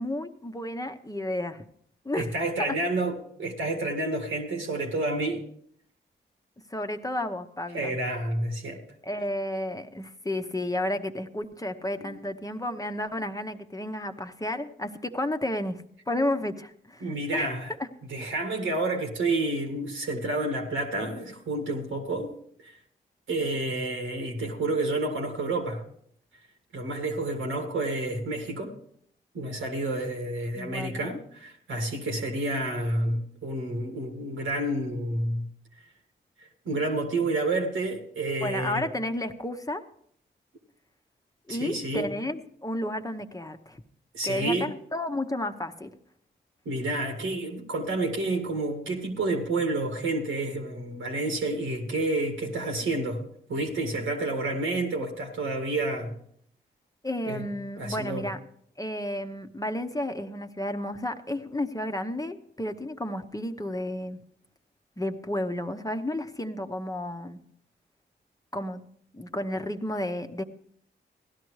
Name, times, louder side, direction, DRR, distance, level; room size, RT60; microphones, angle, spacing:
voice 1, 0.0-1.6 2.0-2.3 2.6-2.7 6.7-7.9 9.0-17.5 17.8-17.9 30.5-31.2 38.4-39.8 41.5-43.8 44.3-45.9 57.0-58.4 58.8-64.2 65.0-67.4 68.5-68.8 69.1-70.4, left 1 dB, 15° left, 6 dB, 0.9 m, -32 dB
voice 2, 2.1-5.4 7.7-8.8 12.0-12.2 17.0-17.7 18.1-22.3 22.6-22.8 23.3-25.8 26.7-28.7 29.3-35.4 36.4-38.9 41.5-42.1 44.1-44.7 46.6-53.2 53.5-56.1 57.3-57.5 57.8-58.3, right 2 dB, 90° right, 2 dB, 1.8 m, -29 dB
16.5 x 12.0 x 3.2 m, 0.66 s
supercardioid pair, 40°, 20 cm